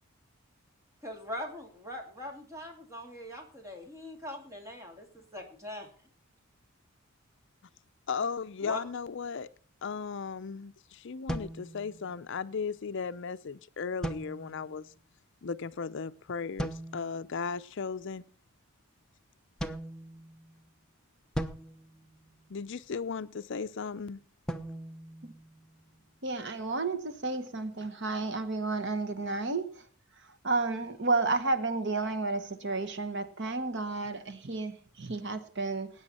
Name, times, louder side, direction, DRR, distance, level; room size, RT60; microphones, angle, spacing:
voice 1, 1.0-5.9 8.6-8.8, left 1 dB, 15° right, 2.7 m, -41 dB
voice 2, 8.1-9.5 9.8-14.9 15.4-18.2 22.5-24.2, left 5 dB, 55° left, 0.5 m, -36 dB
sound 1, 11.3-12.4 14.0-14.8 16.6-17.2 19.6-20.7 21.3-22.8 24.5-26.0, right 1 dB, 5° left, 0.8 m, -39 dB
voice 3, 26.2-29.7 30.4-35.9, right 3 dB, 55° right, 1.1 m, -31 dB
19.5 x 8.9 x 4.3 m
head